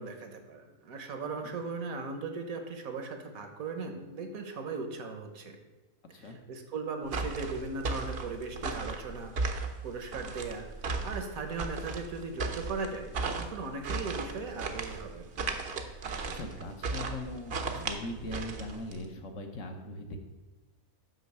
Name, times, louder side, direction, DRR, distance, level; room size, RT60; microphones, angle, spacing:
voice 1, 0.0-5.6 6.1-9.3 9.8-15.3, right 4 dB, 70° right, 6 dB, 1.4 m, -38 dB
sound 1, 7.1-19.0, right 4 dB, 50° right, 0.8 m, -36 dB
voice 2, 16.3-20.2, left 1 dB, 60° left, 4 dB, 1.2 m, -40 dB
6.3 x 5.4 x 6.7 m, 1.2 s
omnidirectional pair, 1.6 m